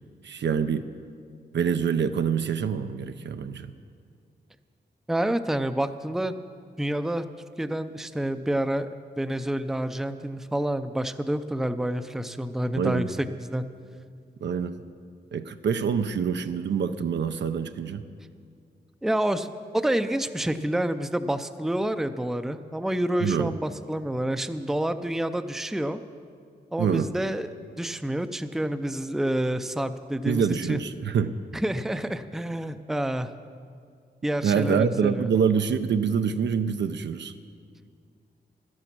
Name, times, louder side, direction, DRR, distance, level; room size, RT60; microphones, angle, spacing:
voice 1, 0.2-0.9 1.5-3.7 12.8-13.1 14.4-14.8 15.3-18.0 23.2-23.6 26.8-27.1 30.3-31.3 34.4-37.3, right 6 dB, 80° right, 9 dB, 0.5 m, -26 dB
voice 2, 5.1-6.3 6.8-7.2 7.6-8.9 9.2-13.0 13.4-13.6 19.0-26.0 26.7-27.5 27.8-30.8 31.6-33.3 34.2-35.2, right 1 dB, ahead, 10 dB, 0.5 m, -28 dB
12.5 x 11.0 x 6.0 m, 2.2 s
wide cardioid pair, 85°, 18 cm